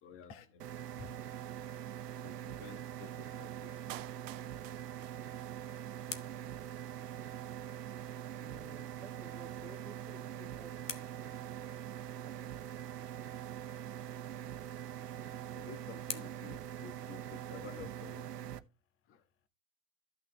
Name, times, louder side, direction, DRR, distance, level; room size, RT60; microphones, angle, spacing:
voice 1, 0.0-1.1 2.2-3.9 15.2-18.5 19.1-19.2, left 7 dB, 25° left, 1.3 m, -52 dB
sound 1, 0.6-18.6, right 10 dB, 85° right, 1.0 m, -43 dB
Clapping, 3.9-5.9 6.1-6.2, right 17 dB, 55° right, 0.6 m, -50 dB
sound 2, 5.2-7.7 9.8-12.2 14.4-17.6, left 8 dB, 85° left, 1.6 m, -51 dB
voice 2, 8.4-11.5, right 1 dB, 5° left, 2.3 m, -56 dB
14.0 x 6.2 x 3.3 m
hypercardioid pair, 125°, 47 cm